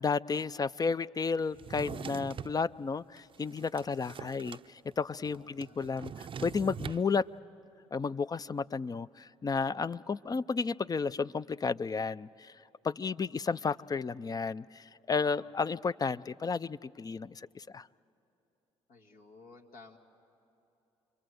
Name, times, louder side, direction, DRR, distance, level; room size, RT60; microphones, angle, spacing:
voice 1, 0.0-7.3 7.9-12.5 12.8-17.9, left 5 dB, 30° left, 0.5 m, -32 dB
Drawer open or close, 1.5-2.6 3.2-4.7 4.9-5.0 5.2-7.0, right 7 dB, 40° right, 0.5 m, -42 dB
voice 2, 5.3-5.8 15.2-15.5 18.9-20.0, left 3 dB, 75° left, 2.1 m, -55 dB
27.5 x 23.0 x 7.9 m
hypercardioid pair, 60°, 13 cm